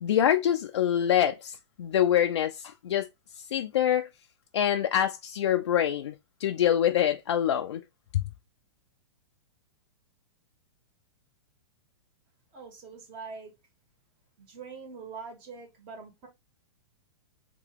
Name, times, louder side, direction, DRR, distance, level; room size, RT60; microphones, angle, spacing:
voice 1, 0.0-3.1 3.4-4.1 4.5-6.1 6.4-7.8 8.1-8.2, left 10 dB, 80° left, 0.4 m, -25 dB
voice 2, 12.5-13.5 14.4-16.3, right 5 dB, 35° right, 1.5 m, -43 dB
3.3 x 3.0 x 3.4 m
hypercardioid pair, 125°, 15 cm